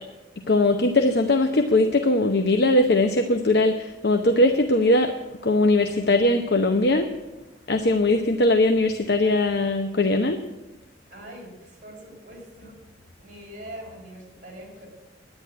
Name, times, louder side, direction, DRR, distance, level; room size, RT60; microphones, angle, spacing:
voice 1, 0.5-5.1 5.4-7.1 7.7-10.4, left 2 dB, 65° left, 5 dB, 0.8 m, -20 dB
voice 2, 11.1-12.8 13.2-14.9, right 1 dB, 45° right, -3 dB, 4.9 m, -42 dB
10.5 x 9.8 x 9.4 m, 1.0 s
head